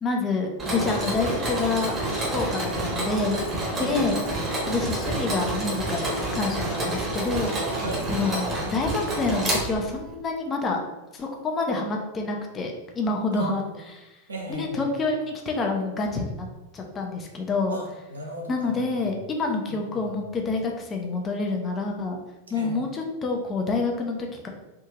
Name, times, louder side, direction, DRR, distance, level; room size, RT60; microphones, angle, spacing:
voice 1, 0.0-2.0 2.3-3.4 3.8-4.2 4.7-7.6 8.1-10.8 11.1-13.6 14.0-14.2 14.5-16.5 16.7-17.8 18.5-22.2 22.5-24.5, left 3 dB, 25° left, 2 dB, 0.6 m, -27 dB
Mechanisms, 0.6-10.1, right 1 dB, 25° right, 1.0 m, -28 dB
voice 2, 3.8-4.1 7.7-8.1 13.4-13.7 14.3-14.9 17.7-19.1 19.7-20.0 22.5-22.8, right 1 dB, 75° right, 0 dB, 0.8 m, -36 dB
3.5 x 2.6 x 2.8 m, 1.0 s
figure-of-eight pair, 90°, 0 cm